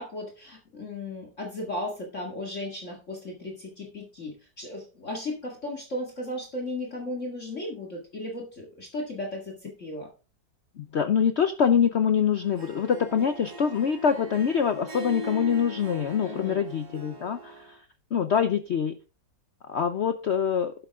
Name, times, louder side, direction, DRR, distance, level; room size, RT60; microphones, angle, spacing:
voice 1, 0.0-10.1 16.2-16.6, left 1 dB, 40° left, 0 dB, 2.2 m, -35 dB
voice 2, 10.8-17.8 18.1-19.0 19.6-20.7, left 7 dB, 85° left, 9 dB, 0.6 m, -25 dB
Harp, 12.4-17.7, left 1 dB, 85° right, 2.9 m, -40 dB
11.5 x 8.0 x 3.5 m, 0.34 s
omnidirectional pair, 2.0 m